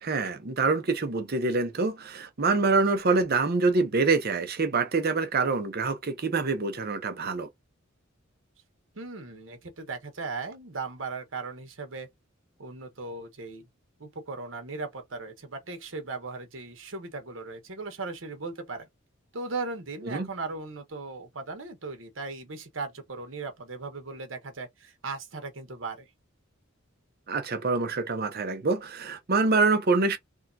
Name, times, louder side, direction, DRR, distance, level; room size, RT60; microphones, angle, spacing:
voice 1, 0.0-7.5 20.1-20.3 27.3-30.2, right 3 dB, 50° right, 0.7 m, -25 dB
voice 2, 8.9-12.1 12.6-13.7 14.0-18.9 19.3-26.1, right 3 dB, 70° right, 1.1 m, -37 dB
3.6 x 2.3 x 2.6 m
head